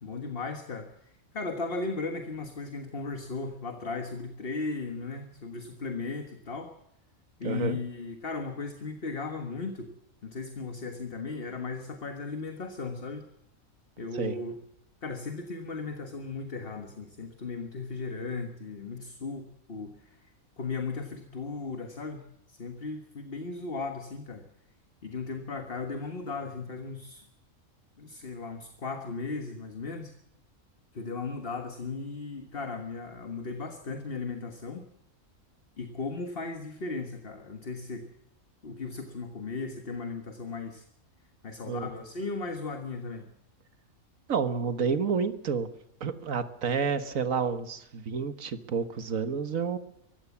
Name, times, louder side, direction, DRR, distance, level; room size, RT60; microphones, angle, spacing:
voice 1, 0.0-1.0 1.3-6.7 7.4-9.9 10.2-13.3 14.0-14.6 15.0-20.2 20.6-24.4 25.0-27.3 28.0-30.2 30.9-34.9 35.8-38.1 38.6-40.8 41.4-43.3, left 4 dB, 45° left, 6 dB, 1.7 m, -36 dB
voice 2, 7.4-7.8 14.1-14.4 41.7-41.9 44.3-45.7 46.0-49.8, right 6 dB, 70° right, 10 dB, 1.7 m, -29 dB
24.0 x 15.5 x 7.2 m, 0.81 s
omnidirectional pair, 1.4 m